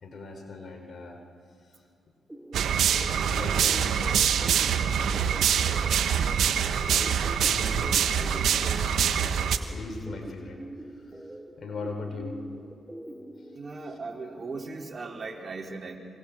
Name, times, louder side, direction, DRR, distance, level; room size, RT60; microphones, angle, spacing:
voice 1, 0.0-1.2 3.4-4.4 6.8-9.4 9.7-10.6 11.1-11.2 11.6-12.6, left 3 dB, 60° left, 5 dB, 4.5 m, -40 dB
sound 1, 2.3-13.6, right 1 dB, 10° right, 2.9 m, -44 dB
sound 2, 2.5-9.6, right 8 dB, 75° right, 1.3 m, -25 dB
voice 2, 13.5-16.0, right 3 dB, 45° right, 1 dB, 3.8 m, -38 dB
27.0 x 24.0 x 7.5 m, 2.3 s
supercardioid pair, 45°, 0 cm